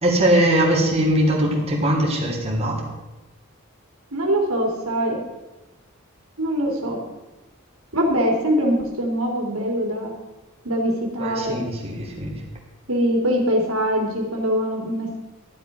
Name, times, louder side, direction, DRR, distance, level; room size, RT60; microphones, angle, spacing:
voice 1, 0.0-2.8 11.2-12.3, right 1 dB, 30° right, -2 dB, 3.2 m, -21 dB
voice 2, 4.1-5.2 6.4-7.0 7.9-10.1 10.6-11.6 12.9-15.2, equal, 90° right, 1 dB, 3.2 m, -23 dB
12.5 x 11.5 x 6.2 m, 1.1 s
head